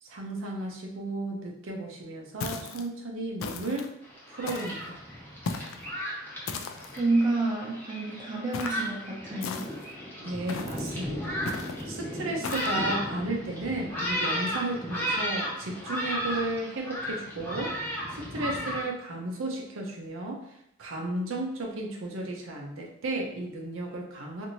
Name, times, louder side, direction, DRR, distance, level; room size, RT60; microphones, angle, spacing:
voice 1, 0.0-3.9 4.3-5.0 10.2-11.5 11.9-17.7 18.1-20.4 20.8-24.5, right 2 dB, 75° right, 0 dB, 0.5 m, -34 dB
sound 1, 2.4-2.9 3.4-3.9 4.5-4.9 5.4-5.8 6.5-7.0 8.5-8.9 9.4-9.9 10.5-10.9 11.5-11.8 12.4-12.8, left 4 dB, 80° left, 0.3 m, -36 dB
Thunderstorm, 4.0-18.8, equal, 10° left, 0.8 m, -34 dB
voice 2, 7.0-9.7, right 2 dB, 20° right, -3 dB, 0.6 m, -28 dB
2.7 x 2.5 x 2.9 m, 0.78 s
head